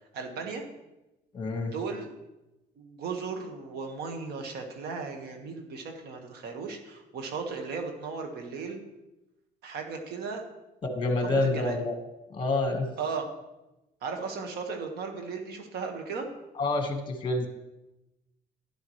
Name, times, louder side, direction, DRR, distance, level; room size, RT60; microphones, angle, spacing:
voice 1, 0.1-0.6 1.6-2.1 2.8-8.8 9.6-10.4 11.2-11.8 13.0-13.3 14.0-16.3, right 5 dB, 70° right, 4 dB, 1.7 m, -36 dB
voice 2, 1.3-1.7 10.8-11.9 12.3-12.9 16.6-17.5, left 2 dB, 30° left, 4 dB, 1.7 m, -27 dB
11.0 x 10.5 x 3.3 m, 0.97 s
cardioid pair, 110°, 17 cm